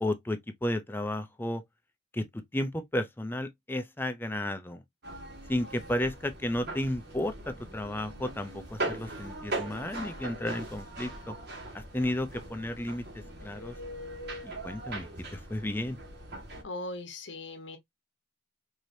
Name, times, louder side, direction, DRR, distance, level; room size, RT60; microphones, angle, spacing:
voice 1, 0.0-1.6 2.1-2.3 2.5-4.8 5.5-11.3 11.9-13.0 13.4-13.7 14.4-15.0 15.3-16.0, left 1 dB, 10° left, 0.5 m, -33 dB
sound 1, 5.0-16.6, right 2 dB, 60° right, 1.6 m, -40 dB
voice 2, 16.6-17.8, left 2 dB, 80° left, 1.1 m, -39 dB
4.8 x 2.9 x 2.6 m
head